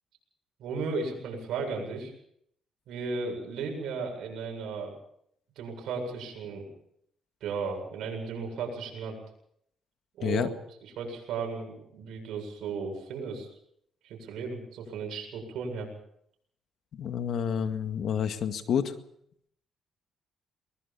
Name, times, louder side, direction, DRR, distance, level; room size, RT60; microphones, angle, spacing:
voice 1, 0.6-2.1 2.9-4.9 5.6-6.7 7.4-9.2 10.2-10.5 11.0-13.5 14.0-15.9, right 4 dB, 80° right, 2 dB, 7.7 m, -35 dB
voice 2, 16.9-18.9, left 8 dB, 65° left, 8 dB, 2.0 m, -29 dB
23.0 x 21.0 x 5.6 m, 0.71 s
cardioid pair, 90°, 0 cm